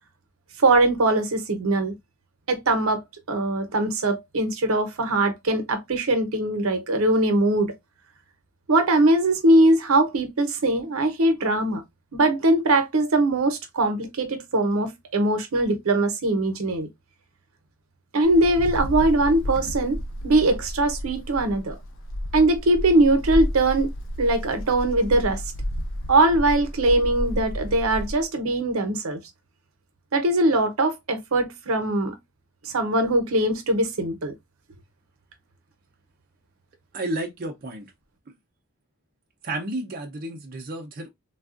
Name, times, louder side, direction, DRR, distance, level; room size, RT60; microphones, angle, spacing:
voice 1, 0.6-1.9 2.5-7.7 8.7-11.8 12.1-16.9 18.1-20.0 20.2-21.8 22.3-23.9 24.2-25.4 26.1-29.2 30.1-32.2 32.6-34.3, right 2 dB, 80° right, 0.8 m, -21 dB
Wind, 18.2-28.2, equal, 65° left, 0.5 m, -31 dB
voice 2, 36.9-37.9 39.4-41.1, right 1 dB, 45° right, 0.5 m, -31 dB
3.4 x 2.3 x 2.4 m
head